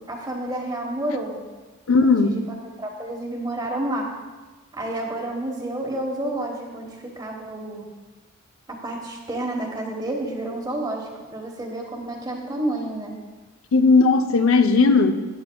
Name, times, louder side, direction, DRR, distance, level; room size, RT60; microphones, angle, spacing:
voice 1, 0.0-1.4 2.0-2.4 2.8-4.1 4.7-7.8 8.7-13.2, right 1 dB, 20° right, 1 dB, 1.2 m, -30 dB
voice 2, 1.9-2.4 13.7-15.1, left 4 dB, 85° left, 8 dB, 0.7 m, -16 dB
15.0 x 9.6 x 2.3 m, 1.3 s
head